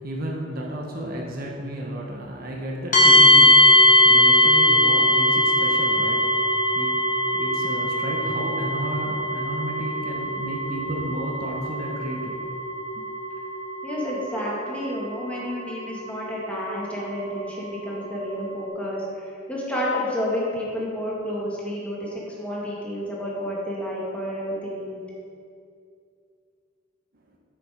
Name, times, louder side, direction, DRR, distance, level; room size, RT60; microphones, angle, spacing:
voice 1, 0.0-6.3 6.7-7.0 7.2-12.4 13.0-13.1 27.1-27.2, right 1 dB, 50° right, -1 dB, 1.1 m, -32 dB
sound 1, 2.9-18.6, left 1 dB, 40° left, 1.7 m, -21 dB
voice 2, 13.8-25.0, equal, 5° left, -6 dB, 2.2 m, -30 dB
8.6 x 7.7 x 5.1 m, 2.3 s
head